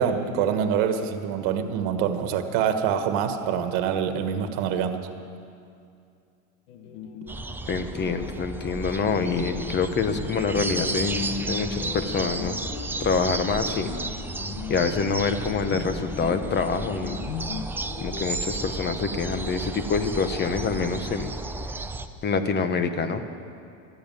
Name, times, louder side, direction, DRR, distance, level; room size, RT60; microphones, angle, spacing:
voice 1, 0.0-5.0, right 8 dB, 60° right, 7 dB, 1.5 m, -25 dB
sound 1, 6.7-20.0, left 6 dB, 75° left, 1.4 m, -38 dB
sound 2, 7.3-22.1, right 3 dB, 5° right, 0.5 m, -33 dB
voice 2, 7.7-12.6 13.0-13.9 14.7-17.2 18.0-21.3 22.2-23.2, left 5 dB, 25° left, 9 dB, 1.1 m, -26 dB
14.0 x 11.0 x 9.2 m, 2.5 s
supercardioid pair, 130°, 39 cm